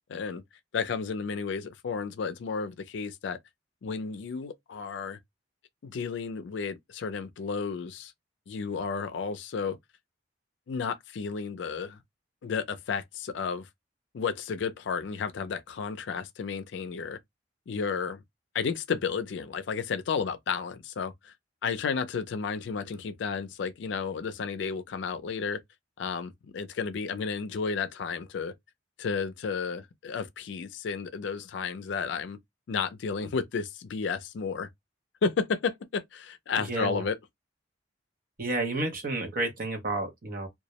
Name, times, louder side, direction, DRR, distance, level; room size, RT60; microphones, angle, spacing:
voice 1, 0.1-0.4 0.7-3.4 3.8-5.2 5.8-8.1 8.5-9.8 10.7-12.0 12.4-13.7 14.1-17.2 17.7-18.2 18.5-21.3 21.6-25.6 26.0-28.5 29.0-32.4 32.7-34.7 35.2-37.2, left 5 dB, 70° left, 0.4 m, -32 dB
voice 2, 36.6-37.0 38.4-40.5, right 2 dB, 50° right, 0.6 m, -31 dB
2.2 x 2.0 x 2.8 m
head